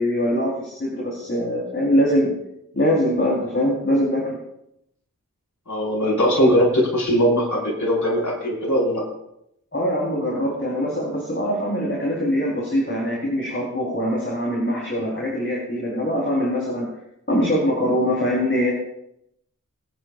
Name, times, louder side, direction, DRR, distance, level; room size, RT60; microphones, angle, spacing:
voice 1, 0.0-2.3 2.7-4.4 9.7-16.9 17.3-18.7, equal, 40° left, -4 dB, 4.0 m, -23 dB
voice 2, 5.7-9.0, equal, 70° left, -4 dB, 5.0 m, -20 dB
23.0 x 9.4 x 2.5 m, 0.78 s
wide cardioid pair, 40°, 32 cm